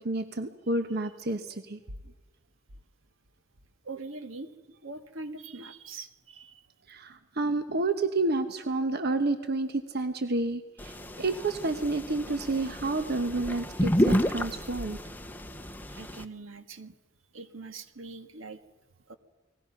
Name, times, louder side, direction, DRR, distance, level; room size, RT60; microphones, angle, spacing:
voice 1, 0.0-1.8 6.9-15.0, right 2 dB, 55° right, 8 dB, 1.1 m, -30 dB
voice 2, 3.8-4.5 4.8-6.6 15.9-16.9 17.3-18.6 19.1-19.2, right 3 dB, 80° right, 8 dB, 1.7 m, -42 dB
sound 1, 10.8-16.2, equal, 10° left, 0.9 m, -31 dB
30.0 x 20.0 x 5.9 m, 1.2 s
head